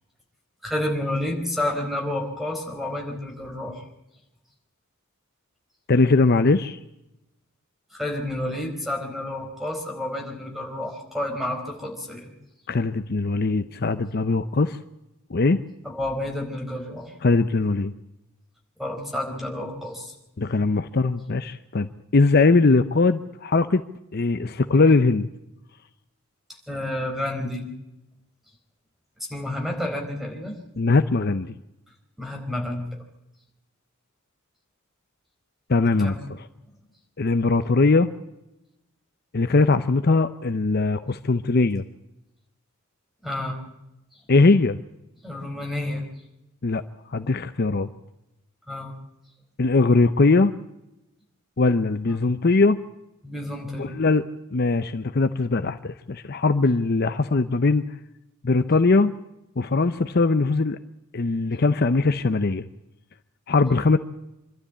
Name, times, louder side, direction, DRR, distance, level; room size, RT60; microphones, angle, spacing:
voice 1, 0.6-3.8 7.9-12.3 15.8-17.1 18.8-20.1 26.7-27.7 29.3-30.6 32.2-32.9 36.0-36.2 43.2-43.6 45.2-46.1 48.7-48.9 52.1-52.2 53.2-53.9, left 1 dB, ahead, 2 dB, 4.4 m, -30 dB
voice 2, 5.9-6.8 12.7-14.8 15.3-15.6 17.2-17.9 20.4-23.8 24.1-25.3 30.8-31.5 35.7-36.2 37.2-38.1 39.3-41.8 44.3-44.8 46.6-46.8 47.1-47.9 49.6-50.5 51.6-52.8 53.8-54.2 54.5-57.8 58.4-59.1 59.6-60.8 61.1-62.6 63.5-64.0, left 3 dB, 50° left, 10 dB, 0.7 m, -20 dB
26.0 x 12.5 x 8.6 m, 0.92 s
head